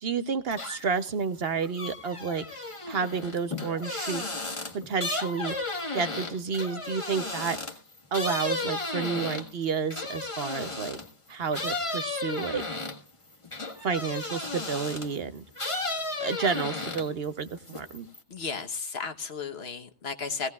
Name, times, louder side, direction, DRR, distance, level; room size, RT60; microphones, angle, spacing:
voice 1, 0.0-2.4 2.9-4.4 4.7-5.5 5.9-7.6 8.1-11.0 11.3-12.6 13.8-15.4 16.2-18.1, right 5 dB, 55° right, 11 dB, 1.0 m, -30 dB
sound 1, 0.5-1.0 1.4-11.1 11.5-15.2 15.5-17.2 17.6-18.2, left 2 dB, 25° left, 1.7 m, -34 dB
voice 2, 18.3-20.5, left 5 dB, 55° left, 7 dB, 1.3 m, -34 dB
18.0 x 16.0 x 2.3 m, 0.32 s
omnidirectional pair, 1.3 m